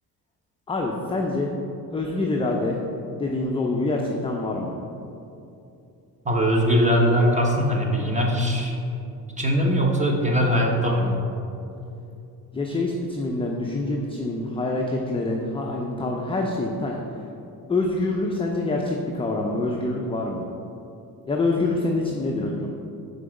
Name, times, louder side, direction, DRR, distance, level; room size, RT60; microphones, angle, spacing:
voice 1, 0.7-1.6 1.9-2.8 3.2-4.8 12.5-17.0 17.7-20.4 21.3-22.7, left 2 dB, 15° left, 0 dB, 0.5 m, -26 dB
voice 2, 6.2-8.7 9.4-11.3, equal, 20° right, 0 dB, 1.1 m, -21 dB
5.5 x 3.9 x 5.1 m, 2.7 s
supercardioid pair, 85°, 39 cm